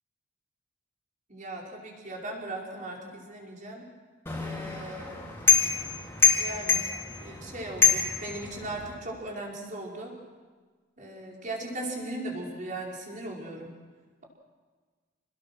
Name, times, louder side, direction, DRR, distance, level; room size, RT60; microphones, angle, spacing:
voice 1, 1.3-3.9 4.4-5.5 6.4-6.9 7.2-10.1 11.0-13.7, right 1 dB, 40° right, -2 dB, 5.3 m, -38 dB
sound 1, 4.3-9.0, left 7 dB, 10° left, 4.1 m, -26 dB
28.0 x 20.5 x 6.3 m, 1.4 s
head